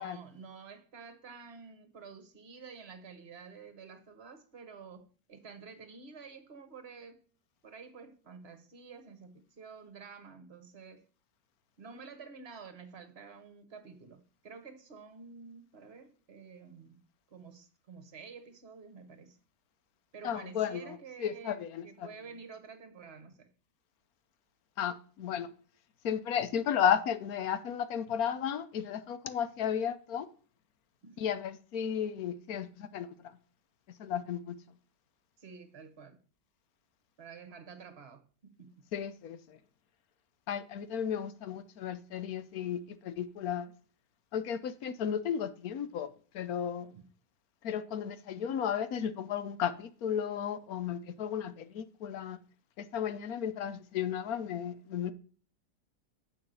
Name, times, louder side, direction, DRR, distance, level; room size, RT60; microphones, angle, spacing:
voice 1, 0.0-7.2 7.6-11.0 11.8-17.0 17.3-19.4 20.1-23.5 31.0-31.2 35.4-36.2 37.2-38.9 46.9-47.1, right 5 dB, 40° right, 1.4 m, -50 dB
voice 2, 20.2-22.1 24.8-25.5 26.0-30.3 31.2-33.4 34.0-34.6 38.9-39.6 40.5-43.7 44.3-46.9 47.6-52.4 52.8-55.1, left 8 dB, 65° left, 1.2 m, -34 dB
8.6 x 5.8 x 8.1 m
omnidirectional pair, 1.8 m